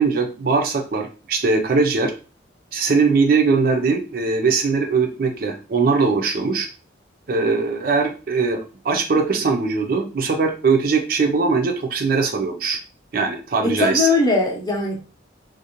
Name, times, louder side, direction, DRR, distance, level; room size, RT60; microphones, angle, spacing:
voice 1, 0.0-2.1 2.7-6.7 7.3-12.8 13.1-14.1, right 4 dB, 50° right, 4 dB, 0.4 m, -20 dB
voice 2, 13.6-15.0, left 3 dB, 20° left, 0 dB, 0.5 m, -20 dB
2.5 x 2.0 x 2.8 m, 0.35 s
head